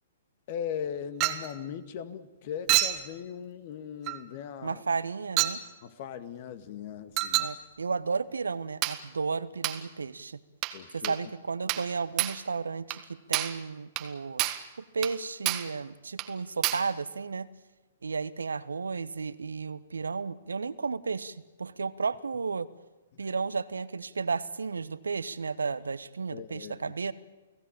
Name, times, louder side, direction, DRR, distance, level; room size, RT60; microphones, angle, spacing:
voice 1, 0.5-4.8 5.8-7.5 10.7-11.3 26.3-26.9, left 8 dB, 45° left, 12 dB, 1.9 m, -39 dB
Chink clink, 1.2-1.5 2.7-3.1 4.1-4.2 5.4-5.6 7.2-7.6 8.8-9.0 9.6-9.8 10.6-10.8 11.0-11.2 11.7-11.9 12.2-12.4 12.9-13.0 13.3-13.6 14.0-14.1 14.4-14.7 15.0-15.2 15.5-15.7 16.2-16.3 16.6-16.9, right 16 dB, 35° right, 1.5 m, -28 dB
voice 2, 4.6-5.6 7.4-10.4 10.9-14.4 14.8-17.5 18.0-22.7 23.2-27.1, right 4 dB, 75° right, 16 dB, 1.1 m, -33 dB
29.5 x 18.0 x 8.9 m, 1.2 s
figure-of-eight pair, 115°, 0 cm